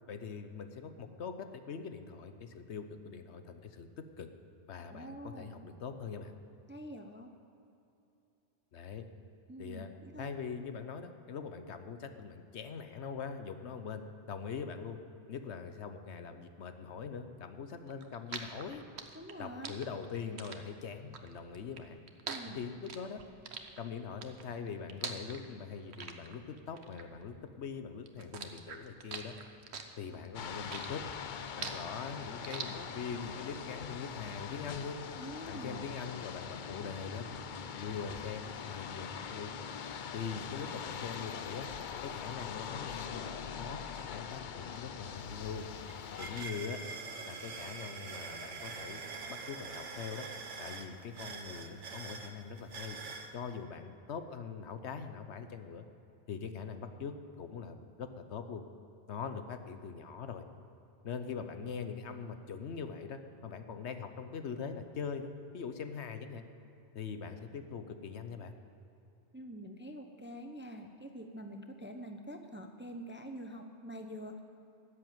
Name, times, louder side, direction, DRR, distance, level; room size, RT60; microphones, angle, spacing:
voice 1, 0.1-3.9 4.2-4.3 4.7-6.3 8.7-9.0 9.6-9.9 10.2-14.0 14.3-15.0 15.3-18.8 19.4-22.0 22.5-23.2 23.8-29.4 29.9-31.0 31.6-35.0 35.5-37.3 37.7-39.5 40.1-41.7 42.0-45.7 46.2-46.8 47.2-49.0 49.3-50.3 50.6-53.0 53.3-55.8 56.3-58.6 59.1-60.4 61.0-66.4 66.9-68.5, left 6 dB, 70° left, 8 dB, 1.1 m, -42 dB
voice 2, 4.9-5.7 6.7-7.3 9.5-10.3 19.1-19.8 22.3-22.6 35.2-35.9 46.4-46.5 69.3-74.4, right 1 dB, 10° right, 5 dB, 0.6 m, -46 dB
sound 1, 17.9-27.7 28.1-33.2, right 6 dB, 65° right, 1.2 m, -44 dB
sound 2, 30.3-46.5, left 7 dB, 55° left, 0.6 m, -43 dB
sound 3, 44.8-44.9 45.2-53.3, right 4 dB, 85° right, 1.4 m, -45 dB
13.5 x 7.8 x 9.0 m, 2.8 s
omnidirectional pair, 1.2 m